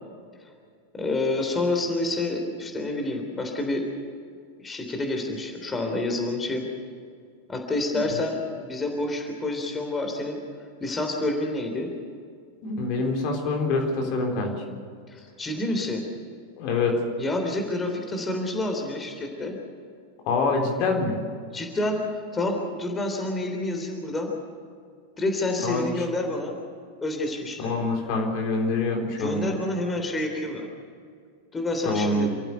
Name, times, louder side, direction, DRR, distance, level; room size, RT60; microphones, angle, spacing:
voice 1, 0.9-3.8 4.6-6.7 7.5-10.4 10.8-11.9 15.1-16.0 17.2-19.6 21.5-24.3 25.2-26.6 27.0-27.7 29.2-30.7 31.5-32.3, left 2 dB, 15° left, 3 dB, 3.5 m, -28 dB
voice 2, 12.6-14.5 16.6-16.9 20.3-21.2 25.6-25.8 27.6-29.6 31.8-32.4, left 3 dB, 45° left, 1 dB, 4.0 m, -25 dB
28.5 x 15.0 x 6.9 m, 2.2 s
figure-of-eight pair, 90°, 0 cm